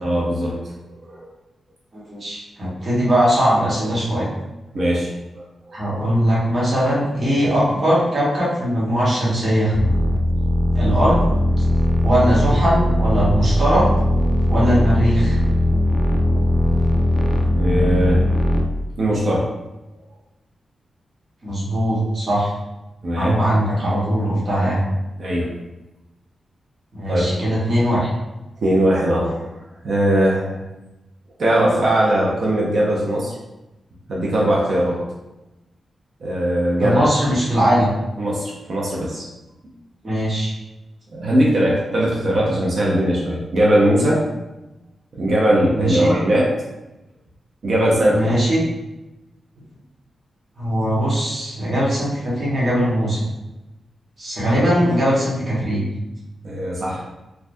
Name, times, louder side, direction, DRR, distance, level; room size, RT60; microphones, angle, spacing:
voice 1, 0.0-0.6 1.0-1.3 4.7-5.1 17.5-18.2 19.0-19.5 23.0-23.4 25.2-25.5 27.0-27.3 28.6-29.4 29.8-30.6 31.4-33.3 34.1-35.0 36.2-37.4 38.2-39.3 41.1-44.2 45.1-46.5 47.6-48.3 56.4-57.1, right 1 dB, 60° right, -4 dB, 0.6 m, -19 dB
voice 2, 1.9-4.3 5.7-9.7 10.7-11.2 12.0-13.9 14.5-15.4 21.4-22.5 23.1-24.8 26.9-28.1 36.8-37.9 40.0-40.5 45.7-46.1 48.1-48.6 50.6-53.2 54.2-55.8, equal, 45° right, -7 dB, 1.2 m, -20 dB
sound 1, 9.7-18.7, left 1 dB, 20° left, 0.3 m, -19 dB
3.3 x 2.3 x 2.6 m, 0.99 s
wide cardioid pair, 120°, 0 cm